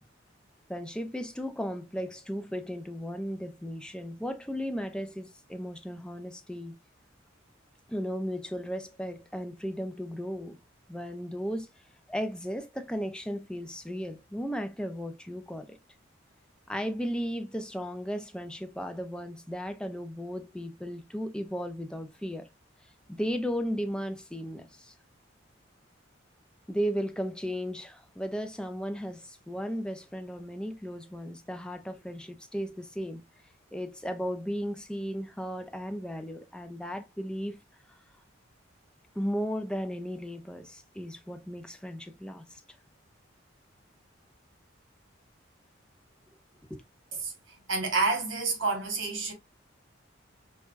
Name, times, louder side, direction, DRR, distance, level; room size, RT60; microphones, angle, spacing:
voice 1, 0.7-6.8 7.9-10.6 10.9-11.7 12.1-15.8 16.7-22.5 23.1-24.9 26.7-33.2 33.7-37.6 39.2-42.6 46.7-46.8, equal, 5° left, 0.4 m, -35 dB
voice 2, 47.7-49.3, right 3 dB, 75° right, 1.4 m, -28 dB
4.4 x 2.2 x 2.4 m
head